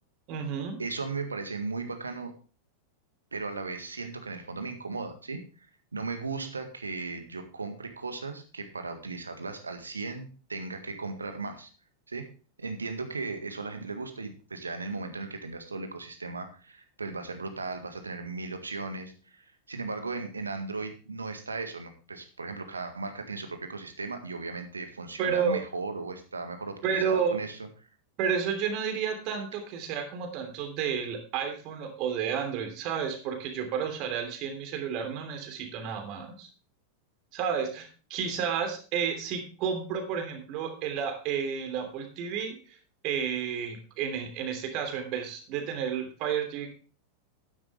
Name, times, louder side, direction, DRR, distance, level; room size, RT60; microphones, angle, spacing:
voice 1, 0.3-0.8 25.2-25.6 26.8-27.4 28.2-36.5 37.3-42.6 43.0-46.7, right 7 dB, 40° right, 5 dB, 3.1 m, -31 dB
voice 2, 0.8-2.3 3.3-5.4 5.9-11.7 12.1-12.3 12.6-27.6, right 3 dB, 75° right, 7 dB, 1.8 m, -36 dB
12.0 x 10.0 x 3.4 m, 0.36 s
figure-of-eight pair, 90°, 0 cm